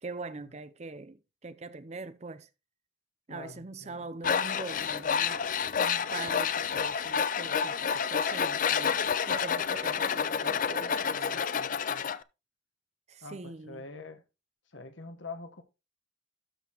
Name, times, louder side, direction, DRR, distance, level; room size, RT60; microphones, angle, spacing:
voice 1, 0.0-2.5 3.3-5.5 5.8-11.4 13.1-13.9, right 3 dB, 35° right, 0.6 m, -43 dB
voice 2, 3.3-4.1 11.1-12.1 13.2-14.2 14.7-15.6, left 3 dB, 80° left, 1.3 m, -45 dB
Tools, 4.2-12.2, left 7 dB, 45° left, 0.4 m, -29 dB
13.0 x 5.7 x 3.0 m
head